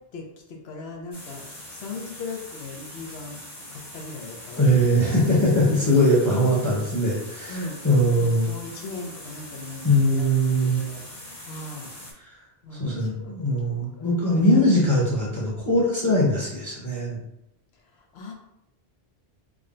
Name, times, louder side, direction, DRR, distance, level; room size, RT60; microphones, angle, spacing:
voice 1, 0.1-3.4 3.7-6.1 7.5-11.0 11.4-11.9 12.6-14.2 17.9-18.3, left 3 dB, 80° left, 1 dB, 1.0 m, -39 dB
sound 1, 1.1-12.1, left 1 dB, 50° left, 1.4 m, -42 dB
voice 2, 4.6-7.6 7.8-8.5 9.8-10.8 12.7-17.2, equal, 20° left, -5 dB, 0.8 m, -21 dB
3.6 x 2.1 x 3.7 m, 0.83 s
omnidirectional pair, 1.1 m